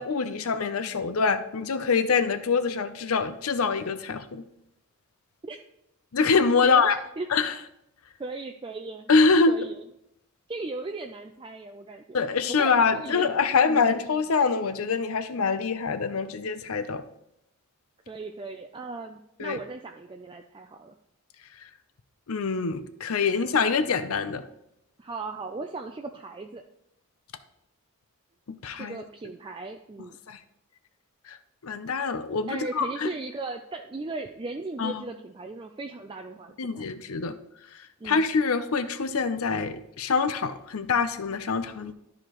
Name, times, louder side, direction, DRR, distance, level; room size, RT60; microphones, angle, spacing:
voice 1, 0.0-4.4 6.1-7.0 7.3-7.5 9.1-9.6 12.1-17.0 19.4-19.6 22.3-24.4 28.5-29.0 30.3-30.4 31.3-31.4 31.6-33.1 34.8-35.0 36.6-37.4 38.0-41.9, left 4 dB, 75° left, 11 dB, 0.6 m, -25 dB
voice 2, 6.6-7.3 8.2-9.1 9.5-9.8 10.5-13.3 13.7-14.0 18.1-20.9 23.3-24.0 25.0-26.6 28.7-30.2 32.5-36.8 38.0-38.3, right 3 dB, 20° right, 4 dB, 0.3 m, -37 dB
12.5 x 4.9 x 3.0 m, 0.81 s
head